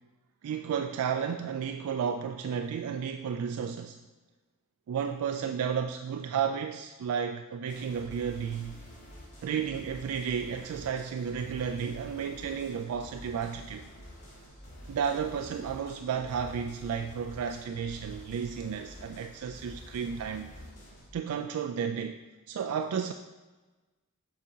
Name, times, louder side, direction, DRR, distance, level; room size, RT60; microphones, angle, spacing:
voice 1, 0.4-4.0 4.9-8.8 9.4-13.9 14.9-20.5 21.1-22.2 22.5-23.1, right 7 dB, 85° right, 5 dB, 0.3 m, -32 dB
sound 1, 7.6-21.1, equal, 35° left, 1.5 m, -48 dB
7.4 x 5.0 x 2.8 m, 1.2 s
head